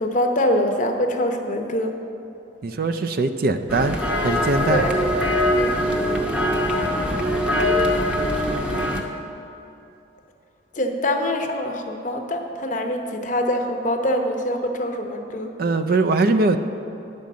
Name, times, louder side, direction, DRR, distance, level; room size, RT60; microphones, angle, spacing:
voice 1, 0.0-1.9 4.7-4.9 5.6-5.7 7.5-7.9 10.8-15.5, left 1 dB, 40° left, 4 dB, 0.8 m, -24 dB
voice 2, 2.6-4.9 15.6-16.6, right 3 dB, 50° right, 8 dB, 0.4 m, -21 dB
sound 1, 3.7-9.0, left 1 dB, 5° right, 0.7 m, -22 dB
10.5 x 5.4 x 7.4 m, 2.9 s
head